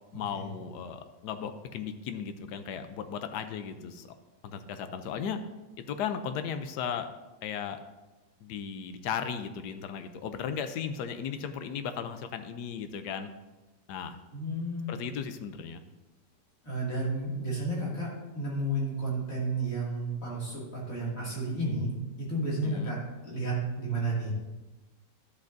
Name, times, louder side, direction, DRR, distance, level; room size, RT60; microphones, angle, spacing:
voice 1, 0.1-4.1 4.4-5.4 5.8-7.1 7.4-7.8 8.4-13.3 13.9-14.2 14.9-15.8 22.6-22.9, left 7 dB, 75° left, 9 dB, 1.2 m, -36 dB
voice 2, 14.3-15.0 16.6-18.1 18.3-23.0 23.2-24.3, right 2 dB, 50° left, -5 dB, 2.8 m, -32 dB
12.0 x 7.6 x 2.6 m, 1.1 s
omnidirectional pair, 1.8 m